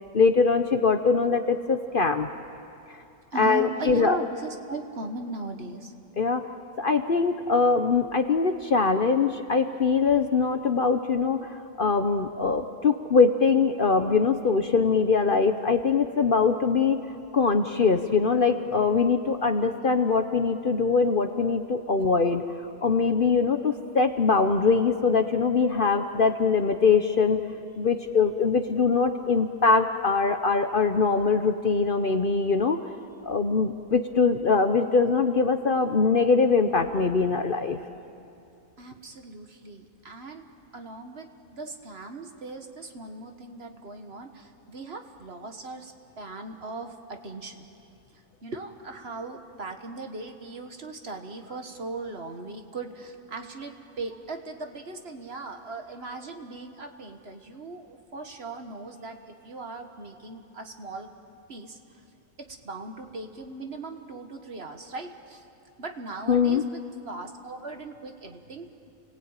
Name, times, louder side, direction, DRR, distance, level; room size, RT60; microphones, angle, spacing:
voice 1, 0.1-2.3 3.4-4.2 6.2-6.4 6.8-17.0 17.3-22.4 22.8-27.4 27.8-32.8 33.2-37.8 66.3-66.6, left 4 dB, 45° left, 8 dB, 0.9 m, -22 dB
voice 2, 3.3-5.9 38.8-40.5 40.7-47.7 48.1-61.1 61.5-61.8 62.4-65.4 65.8-68.7, right 3 dB, 50° right, 5 dB, 1.7 m, -39 dB
29.5 x 19.0 x 9.0 m, 2.6 s
omnidirectional pair, 1.4 m